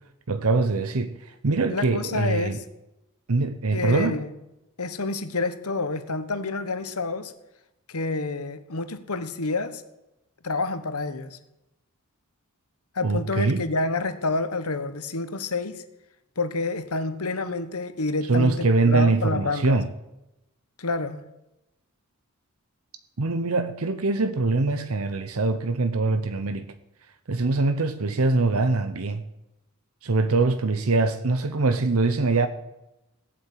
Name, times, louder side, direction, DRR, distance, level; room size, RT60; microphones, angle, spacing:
voice 1, 0.3-2.6 3.3-4.2 13.0-13.7 18.3-19.9 23.2-26.7 27.3-29.2 30.0-32.5, right 3 dB, 70° right, 0.8 m, -23 dB
voice 2, 1.7-2.6 3.7-4.3 4.8-7.3 7.9-9.8 10.4-11.4 12.9-15.8 16.4-19.8 20.8-21.2, left 3 dB, 85° left, 1.3 m, -28 dB
17.0 x 8.6 x 8.5 m
head